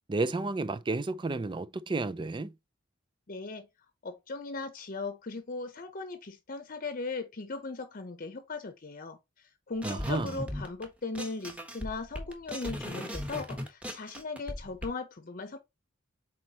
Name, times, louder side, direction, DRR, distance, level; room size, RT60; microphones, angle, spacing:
voice 1, 0.1-2.5 9.8-10.4, right 3 dB, 25° right, 0.4 m, -32 dB
voice 2, 3.3-3.7 4.0-15.6, left 3 dB, 45° left, 0.8 m, -38 dB
sound 1, 9.8-10.8 11.1-14.9, equal, 5° right, 1.4 m, -38 dB
7.4 x 4.4 x 2.9 m
head